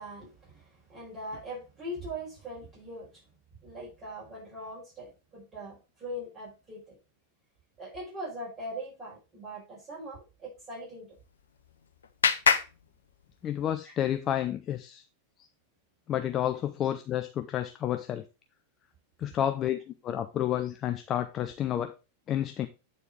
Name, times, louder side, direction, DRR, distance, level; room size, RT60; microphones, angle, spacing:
voice 1, 0.0-3.2 3.6-7.0 7.8-11.1 13.8-13.9, equal, 20° right, 5.1 m, -41 dB
Clapping, 11.1-13.7, left 6 dB, 70° left, 0.8 m, -30 dB
voice 2, 13.4-15.0 16.1-18.2 19.2-19.8 20.0-21.9 22.3-22.7, left 11 dB, 30° left, 0.6 m, -30 dB
8.8 x 4.4 x 4.9 m
figure-of-eight pair, 90°, 0 cm